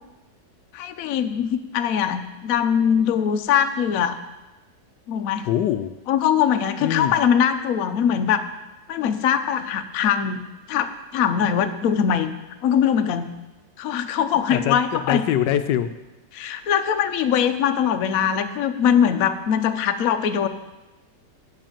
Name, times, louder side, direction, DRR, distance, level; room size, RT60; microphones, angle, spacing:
voice 1, 0.7-4.2 5.1-5.5 6.1-8.4 8.9-10.4 10.7-12.3 12.6-13.3 13.8-15.2 16.3-20.5, left 8 dB, 65° left, 9 dB, 1.0 m, -22 dB
voice 2, 5.4-5.9 6.8-7.1 14.5-15.9, left 10 dB, 80° left, 11 dB, 1.2 m, -23 dB
8.8 x 7.6 x 7.3 m, 1.0 s
omnidirectional pair, 1.9 m